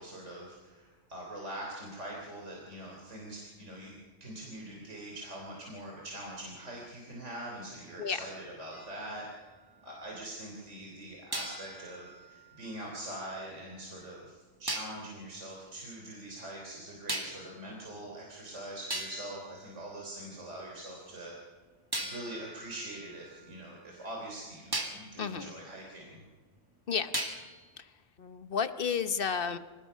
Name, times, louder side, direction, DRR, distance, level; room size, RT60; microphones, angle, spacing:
voice 1, 0.0-9.3 9.8-21.3 22.0-26.2, right 1 dB, 70° right, -1 dB, 3.8 m, -43 dB
sound 1, 8.7-10.1 11.3-13.4 14.7-15.1 17.1-17.6 18.4-18.5 18.9-20.5 21.9-24.1 24.7-25.1 27.1-27.7, right 1 dB, 20° right, 2.2 m, -40 dB
voice 2, 25.2-25.5 26.9-27.1 27.8-27.9 28.2-29.6, left 6 dB, 50° left, 11 dB, 1.0 m, -32 dB
25.5 x 19.0 x 5.5 m, 1.5 s
omnidirectional pair, 1.3 m